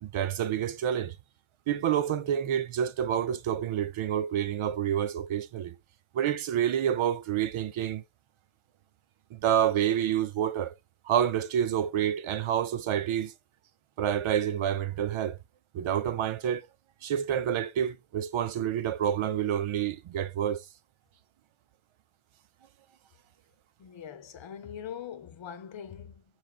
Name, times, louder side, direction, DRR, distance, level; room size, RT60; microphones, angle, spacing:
voice 1, 0.0-1.2 1.7-5.8 6.1-8.0 9.3-10.8 11.0-13.3 14.0-15.4 15.7-16.7 17.0-20.7, right 9 dB, 75° right, 0.6 m, -28 dB
voice 2, 23.8-26.2, left 8 dB, 65° left, 0.8 m, -42 dB
4.0 x 3.7 x 2.3 m
wide cardioid pair, 150°, 49 cm